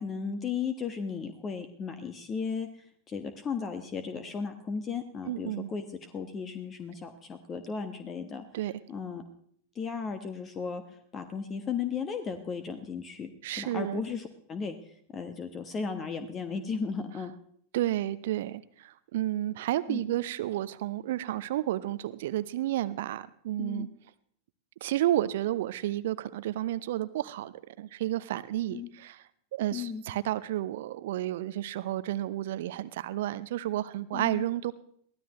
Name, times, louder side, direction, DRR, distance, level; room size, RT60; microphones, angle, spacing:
voice 1, 0.0-8.4 8.9-9.2 9.7-10.8 11.1-17.3 19.9-20.0 23.6-23.9 28.7-28.9 29.7-30.0 34.1-34.5, left 5 dB, 25° left, 10 dB, 1.3 m, -35 dB
voice 2, 5.2-5.7 8.5-8.8 13.4-14.0 17.7-23.9 24.8-34.7, right 14 dB, 55° right, 15 dB, 0.7 m, -31 dB
23.0 x 16.5 x 3.1 m, 0.63 s
figure-of-eight pair, 90°, 0 cm